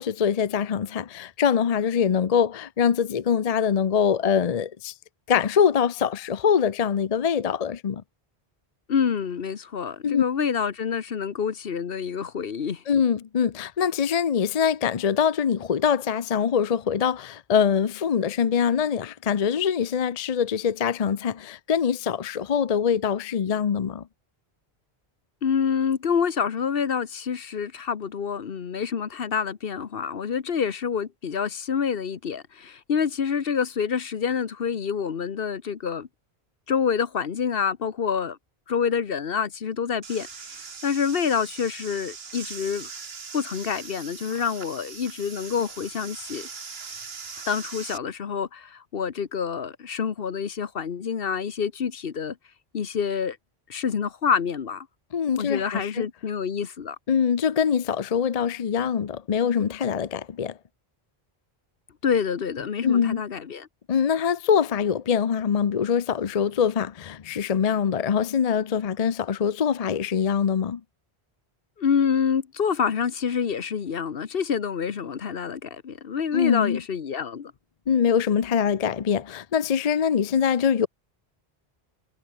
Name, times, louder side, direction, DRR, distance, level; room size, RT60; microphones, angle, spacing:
voice 1, 0.0-4.9 5.3-8.0 10.0-10.2 12.9-24.1 55.1-56.1 57.1-60.6 62.8-63.2 63.9-70.8 76.3-76.8 77.9-80.9, left 7 dB, 45° left, 0.7 m, -23 dB
voice 2, 8.9-12.8 25.4-36.1 36.7-38.4 38.7-42.9 43.3-46.5 47.5-52.4 52.7-53.4 53.7-54.9 55.4-57.0 62.0-63.7 71.8-77.5, left 7 dB, 65° left, 1.2 m, -27 dB
sound 1, 40.0-48.0, right 5 dB, 75° right, 1.7 m, -40 dB
omnidirectional pair, 1.0 m